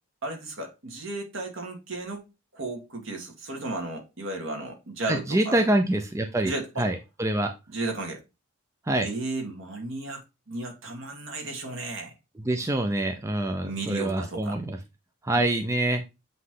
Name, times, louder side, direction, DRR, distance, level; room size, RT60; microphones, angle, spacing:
voice 1, 0.2-2.2 2.5-5.6 6.4-6.9 7.7-8.2 9.0-10.2 10.5-12.1 13.6-14.6 15.3-15.4, right 2 dB, 65° right, 2.1 m, -34 dB
voice 2, 5.1-6.5 6.8-7.5 8.9-9.1 12.4-14.8 15.2-16.0, right 1 dB, 15° right, 0.5 m, -25 dB
7.8 x 3.2 x 3.8 m
head